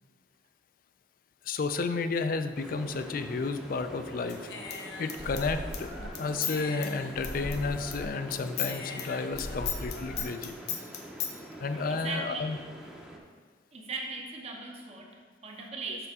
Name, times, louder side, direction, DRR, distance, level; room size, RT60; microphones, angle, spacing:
voice 1, 1.4-4.5 5.0-10.5 11.6-12.6, left 4 dB, 55° left, 9 dB, 0.4 m, -32 dB
sound 1, 2.5-13.2, right 1 dB, 5° right, 0.7 m, -45 dB
Human voice / Scissors, 4.3-8.1 8.3-11.3, left 5 dB, 70° left, 0.8 m, -36 dB
voice 2, 11.7-12.5 13.7-16.1, right 3 dB, 35° right, 1 dB, 0.8 m, -39 dB
6.7 x 5.8 x 3.6 m, 1.5 s
head